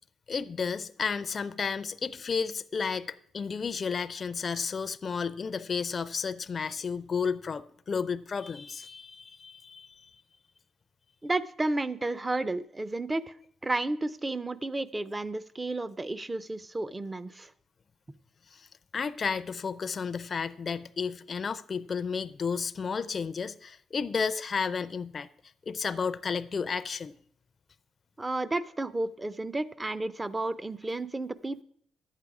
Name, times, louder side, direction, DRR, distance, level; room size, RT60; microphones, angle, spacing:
voice 1, 0.3-9.9 18.5-18.7 18.9-25.3 25.7-27.1, left 5 dB, 40° left, 0.5 m, -32 dB
voice 2, 11.2-13.2 13.6-17.5 28.2-31.6, right 2 dB, 20° right, 0.6 m, -32 dB
11.5 x 8.3 x 4.8 m
cardioid pair, 90°, 0 cm